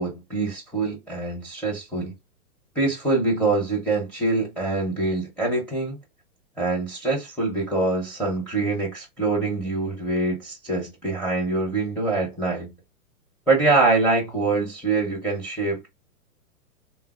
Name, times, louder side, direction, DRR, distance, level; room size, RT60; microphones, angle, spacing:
voice 1, 0.0-2.1 2.8-6.0 6.6-12.7 13.5-15.9, right 3 dB, 5° left, 0.6 m, -24 dB
3.3 x 2.1 x 2.3 m
hypercardioid pair, 120°, 46 cm